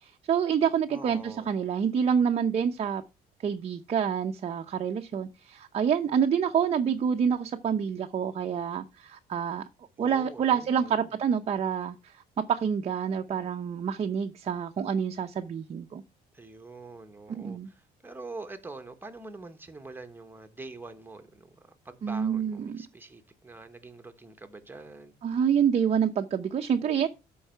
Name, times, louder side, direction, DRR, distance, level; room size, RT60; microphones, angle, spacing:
voice 1, 0.0-3.0 3.4-9.6 10.0-12.0 12.5-16.0 17.3-17.7 22.0-22.8 25.2-27.1, right 7 dB, 40° right, 0.7 m, -27 dB
voice 2, 0.9-1.5 10.0-11.1 16.3-25.1, right 3 dB, 10° right, 1.3 m, -45 dB
13.0 x 4.7 x 4.6 m
cardioid pair, 110°, 17 cm